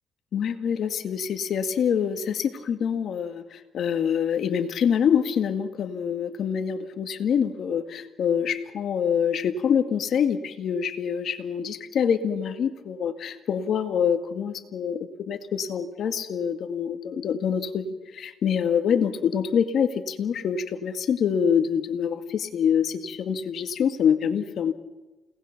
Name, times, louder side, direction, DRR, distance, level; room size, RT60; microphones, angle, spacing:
voice 1, 0.3-24.7, left 7 dB, 65° left, 8 dB, 1.9 m, -25 dB
29.5 x 19.0 x 5.9 m, 1.1 s
cardioid pair, 90°, 0 cm